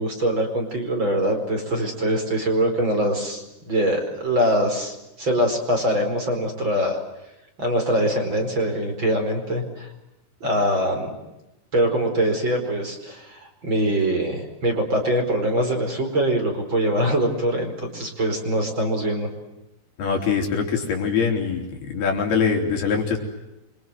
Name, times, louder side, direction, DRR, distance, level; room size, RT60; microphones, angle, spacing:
voice 1, 0.0-7.0 7.6-9.9 10.4-11.1 11.7-19.3, right 1 dB, 30° right, 4 dB, 5.1 m, -23 dB
voice 2, 20.0-23.2, left 5 dB, 65° left, 2 dB, 5.8 m, -23 dB
28.5 x 25.5 x 7.7 m, 0.95 s
omnidirectional pair, 4.8 m